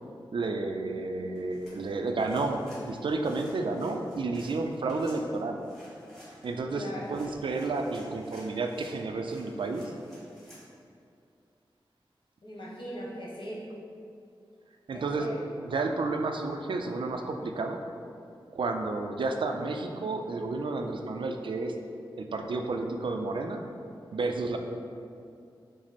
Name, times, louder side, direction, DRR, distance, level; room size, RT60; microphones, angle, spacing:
voice 1, 0.3-5.6 6.4-9.9 14.9-15.3 15.7-17.8 18.5-21.7 22.2-23.6 24.1-24.6, right 3 dB, 65° right, 4 dB, 0.4 m, -31 dB
sound 1, 1.3-10.7, equal, 5° left, 1.5 m, -55 dB
voice 2, 6.7-7.0 12.4-13.7 14.9-15.4, equal, 65° left, -5 dB, 1.1 m, -40 dB
5.9 x 2.0 x 4.1 m, 2.5 s
cardioid pair, 60°, 9 cm